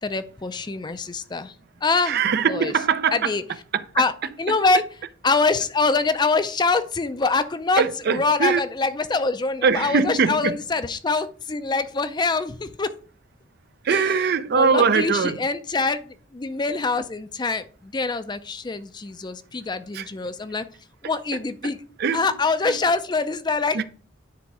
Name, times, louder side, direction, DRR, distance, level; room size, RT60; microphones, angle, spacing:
voice 1, 0.0-1.5 1.8-2.2 2.5-2.7 3.1-3.4 4.0-4.1 4.4-4.8 5.2-12.9 13.9-14.1 14.5-20.7 21.0-21.8 22.1-23.8, left 3 dB, 20° left, 0.4 m, -24 dB
voice 2, 2.1-3.3 3.7-3.8 7.8-8.6 9.6-10.6 13.8-15.4 19.9-20.1 22.0-22.3 22.6-22.8 23.7-23.8, right 5 dB, 55° right, 0.4 m, -21 dB
9.6 x 4.0 x 4.7 m
head